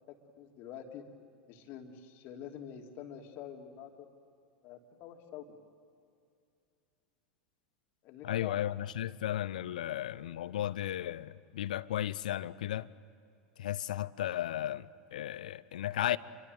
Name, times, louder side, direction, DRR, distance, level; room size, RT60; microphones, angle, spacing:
voice 1, 0.1-1.1 1.5-4.1 4.6-5.6 8.0-8.6, left 9 dB, 50° left, 3.1 m, -47 dB
voice 2, 8.2-12.9 13.6-16.2, left 12 dB, 65° left, 0.7 m, -35 dB
30.0 x 24.0 x 7.9 m
figure-of-eight pair, 85°, 5 cm